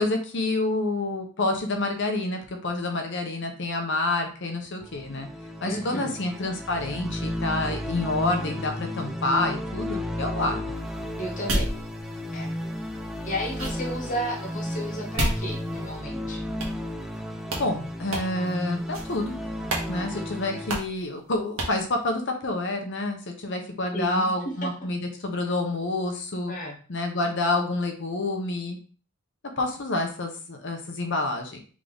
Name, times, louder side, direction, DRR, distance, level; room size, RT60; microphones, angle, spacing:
voice 1, 0.0-5.3 5.6-10.7 17.6-19.4 19.9-26.5 26.9-28.8 29.6-31.6, left 2 dB, 55° left, 4 dB, 0.8 m, -28 dB
sound 1, 4.8-20.7, left 1 dB, ahead, 0.4 m, -33 dB
voice 2, 5.6-6.2 11.2-11.7 12.3-12.5 13.2-16.4 23.9-24.3 26.5-26.8, equal, 35° left, -1 dB, 1.3 m, -32 dB
sound 2, 10.7-16.1 16.6-17.2 17.4-17.7 18.1-18.5 18.9-19.3 19.7-19.9 20.1-20.2 20.7-21.0 21.6-21.8, right 1 dB, 65° right, 1.3 m, -33 dB
3.7 x 3.5 x 3.8 m, 0.40 s
head